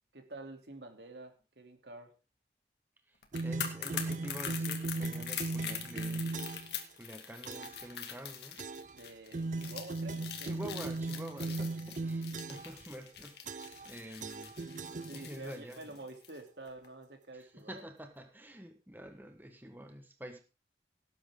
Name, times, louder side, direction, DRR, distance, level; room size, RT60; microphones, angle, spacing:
voice 1, 0.1-2.1 8.9-10.6 11.4-11.6 15.1-17.8, right 2 dB, 80° right, 4 dB, 3.1 m, -48 dB
voice 2, 3.1-6.4 7.0-8.6 10.4-14.6 15.1-16.0 17.3-20.4, equal, 10° right, 5 dB, 1.3 m, -47 dB
sound 1, 3.2-16.4 16.7-16.9, left 8 dB, 70° left, 2.3 m, -43 dB
sound 2, 3.3-6.8 7.5-7.9 8.6-9.0 9.3-12.8 13.5-13.9 14.2-15.5, right 3 dB, 45° right, 0.5 m, -38 dB
18.0 x 9.4 x 3.8 m, 0.32 s
head